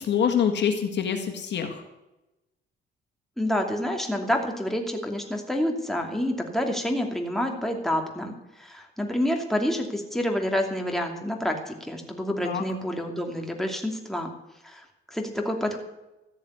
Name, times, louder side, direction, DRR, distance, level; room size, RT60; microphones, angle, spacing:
voice 1, 0.0-1.8 12.4-12.6, left 8 dB, 60° left, 5 dB, 1.8 m, -25 dB
voice 2, 3.4-14.3 14.6-15.8, left 1 dB, ahead, 2 dB, 2.6 m, -28 dB
14.0 x 7.2 x 9.5 m, 0.96 s
cardioid pair, 90°, 20 cm